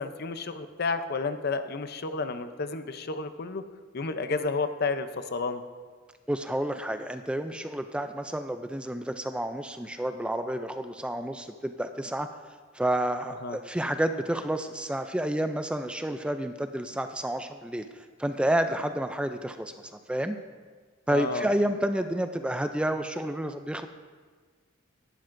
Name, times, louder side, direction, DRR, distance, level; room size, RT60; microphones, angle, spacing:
voice 1, 0.0-3.6 3.9-5.6 13.4-13.6 21.1-21.5, left 4 dB, 50° left, 10 dB, 0.6 m, -31 dB
voice 2, 6.3-12.3 12.7-17.9 18.2-19.7 20.1-20.4 21.1-23.9, right 1 dB, 5° right, 8 dB, 0.3 m, -30 dB
17.0 x 11.5 x 2.6 m, 1.5 s
head